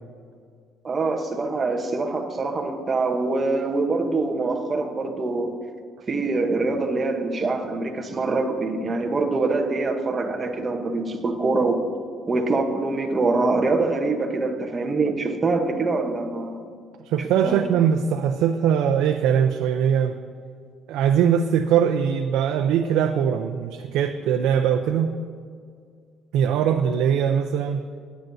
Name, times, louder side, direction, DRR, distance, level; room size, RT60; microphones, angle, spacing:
voice 1, 0.8-5.5 6.1-11.8 12.3-16.6 17.4-17.6, right 3 dB, 20° right, 3 dB, 1.0 m, -24 dB
voice 2, 17.0-20.1 20.9-25.1 26.3-27.9, right 8 dB, 85° right, 5 dB, 0.5 m, -21 dB
19.5 x 9.1 x 2.7 m, 2.1 s
cardioid pair, 165°, 0 cm